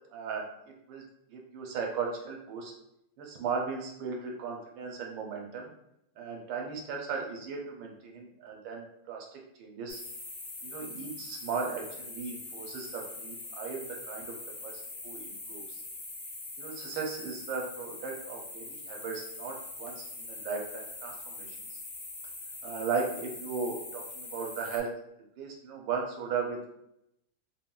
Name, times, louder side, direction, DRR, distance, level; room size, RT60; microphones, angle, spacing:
voice 1, 0.1-0.5 0.9-1.0 1.3-2.7 3.2-5.7 6.2-10.0 10.6-14.3 14.6-14.7 15.0-15.8 16.6-21.6 22.6-24.9 25.4-26.7, right 5 dB, 80° right, 0 dB, 1.3 m, -36 dB
sound 1, 9.9-24.8, left 2 dB, 60° left, 0.9 m, -43 dB
3.7 x 2.1 x 2.3 m, 0.78 s
omnidirectional pair, 2.1 m